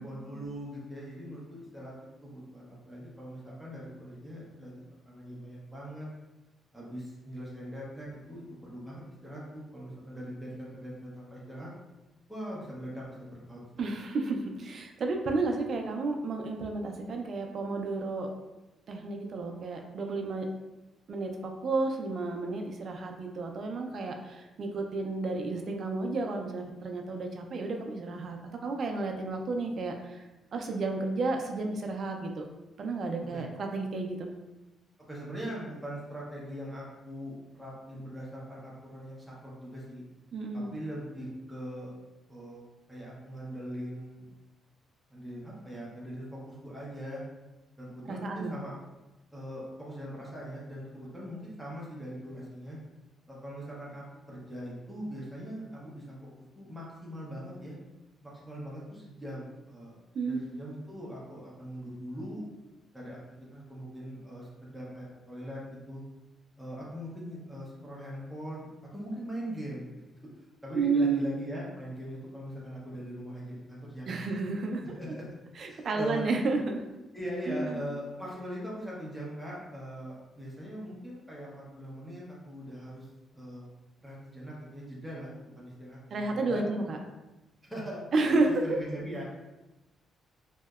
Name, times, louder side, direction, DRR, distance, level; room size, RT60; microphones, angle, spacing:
voice 1, 0.0-1.9 2.2-6.1 6.7-11.7 12.3-13.6 33.3-33.4 35.1-40.0 40.5-41.9 42.3-42.6 42.9-44.3 45.1-47.2 47.8-48.7 49.3-52.8 53.3-56.2 56.5-57.8 58.2-60.0 60.2-62.4 62.9-65.6 65.9-66.0 66.6-69.9 70.6-74.4 74.9-75.2 75.7-76.2 77.1-83.1 83.3-83.7 84.0-86.6 87.6-88.0 88.4-89.2, equal, ahead, -6 dB, 0.6 m, -41 dB
voice 2, 13.8-18.3 18.9-20.5 21.1-30.2 30.5-32.5 32.8-34.3 40.3-40.7 48.1-48.5 60.1-60.4 70.7-71.2 74.1-74.8 75.6-76.8 77.5-77.8 86.1-87.0 88.1-88.8, right 3 dB, 45° right, 3 dB, 0.3 m, -31 dB
2.7 x 2.0 x 2.3 m, 1.0 s
cardioid pair, 140°, 0 cm